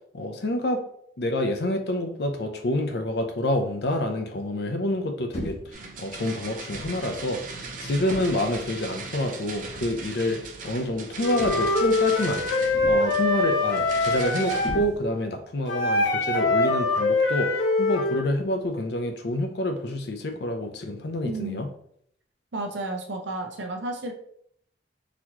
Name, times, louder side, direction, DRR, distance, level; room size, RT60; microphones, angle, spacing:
voice 1, 0.1-0.8 1.2-7.4 7.8-12.4 12.9-17.5 17.8-21.7, left 1 dB, 60° left, 5 dB, 0.6 m, -28 dB
sound 1, 5.3-5.8 6.7-7.0 8.1-8.6 9.7-9.9 11.4-11.9 12.7-13.2 14.6-15.3, equal, 35° left, 0.9 m, -37 dB
sound 2, 5.7-14.7, right 4 dB, 45° right, 0.6 m, -39 dB
Wind instrument woodwind instrument, 11.2-14.8 15.7-18.2, left 2 dB, 90° left, 1.1 m, -23 dB
voice 2, 21.2-21.7 22.5-24.1, right 2 dB, 85° right, 4 dB, 0.7 m, -32 dB
4.0 x 2.9 x 2.9 m, 0.66 s
head